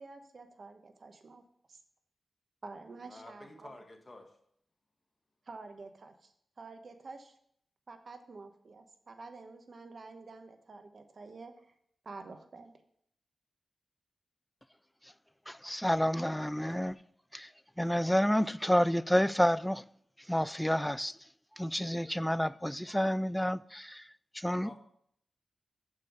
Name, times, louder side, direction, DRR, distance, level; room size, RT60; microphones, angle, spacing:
voice 1, 0.0-1.4 1.7-1.8 2.6-3.7 5.5-7.3 7.9-11.7 12.0-12.7, right 3 dB, 60° right, 1.0 m, -49 dB
voice 2, 3.1-4.3 24.6-24.8, left 2 dB, 30° left, 1.6 m, -50 dB
voice 3, 15.5-17.0 17.3-17.5 17.8-19.8 20.3-21.2 21.6-24.1 24.3-24.7, equal, 5° left, 0.3 m, -29 dB
6.7 x 5.4 x 6.2 m
cardioid pair, 55°, 0 cm